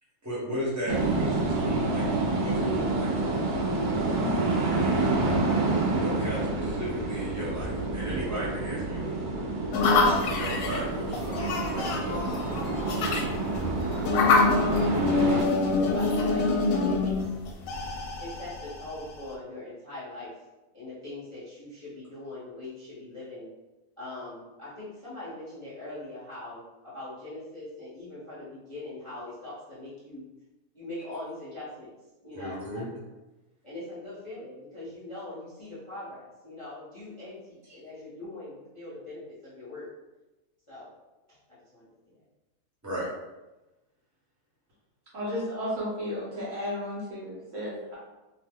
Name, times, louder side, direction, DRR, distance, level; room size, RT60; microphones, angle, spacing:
voice 1, 0.2-3.3 5.9-9.3 9.8-12.2 32.3-32.9 42.8-43.1, equal, 15° right, -7 dB, 0.9 m, -35 dB
sound 1, 0.9-15.4, right 2 dB, 75° right, 1.1 m, -28 dB
sound 2, 9.7-19.3, left 3 dB, 75° left, 1.0 m, -26 dB
voice 2, 15.9-17.2 18.2-20.3 20.7-23.5 24.0-30.2 30.7-31.9 32.2-32.8 33.6-39.9 40.7-41.0 41.3-41.9, left 2 dB, 25° left, -10 dB, 0.7 m, -42 dB
voice 3, 45.1-48.0, left 1 dB, 60° right, -6 dB, 1.1 m, -33 dB
2.8 x 2.0 x 3.5 m, 1.1 s
omnidirectional pair, 1.7 m